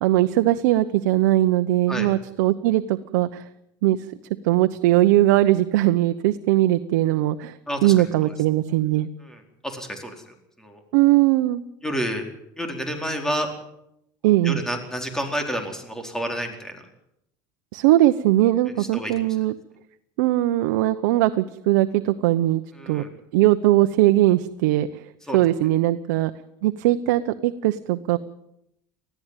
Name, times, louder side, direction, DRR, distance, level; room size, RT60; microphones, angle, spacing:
voice 1, 0.0-3.4 3.8-4.0 4.4-7.6 7.8-9.1 10.9-11.6 14.2-14.6 17.7-19.5 20.2-23.0 23.3-24.9 25.3-26.3 26.6-28.2, right 15 dB, 85° right, 9 dB, 0.9 m, -20 dB
voice 2, 9.2-10.8 11.8-12.2 12.6-13.5 14.4-16.8 18.9-19.1 22.7-23.1 25.3-25.4, equal, 5° left, 4 dB, 4.4 m, -30 dB
20.0 x 15.0 x 9.1 m, 0.80 s
supercardioid pair, 125°, 10 cm